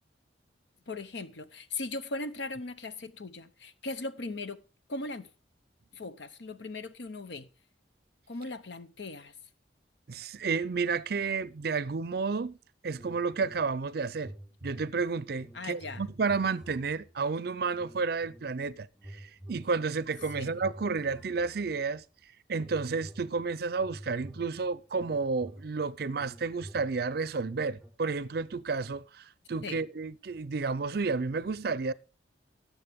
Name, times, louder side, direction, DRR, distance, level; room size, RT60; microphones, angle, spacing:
voice 1, 0.9-4.6 4.9-5.3 5.9-7.5 8.3-9.3 15.5-16.0 20.3-20.6 29.6-29.8, left 2 dB, 75° left, 0.9 m, -38 dB
voice 2, 10.1-12.6 12.8-14.3 14.6-22.0 22.5-31.9, right 4 dB, 55° right, 0.5 m, -31 dB
sound 1, 12.9-13.9 14.1-17.2 17.7-18.6 18.9-22.0 22.5-27.9, right 1 dB, ahead, 3.7 m, -49 dB
19.0 x 7.3 x 3.6 m
head